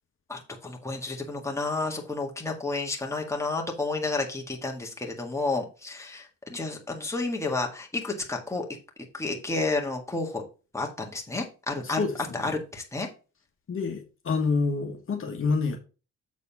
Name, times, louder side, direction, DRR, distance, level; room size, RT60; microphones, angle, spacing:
voice 1, 0.3-8.7 9.1-10.4 10.7-12.0 12.3-13.1, left 3 dB, 10° left, 1.8 m, -31 dB
voice 2, 11.8-12.6 13.7-15.8, left 4 dB, 45° left, 1.4 m, -28 dB
7.2 x 4.1 x 5.4 m
cardioid pair, 90°, 30 cm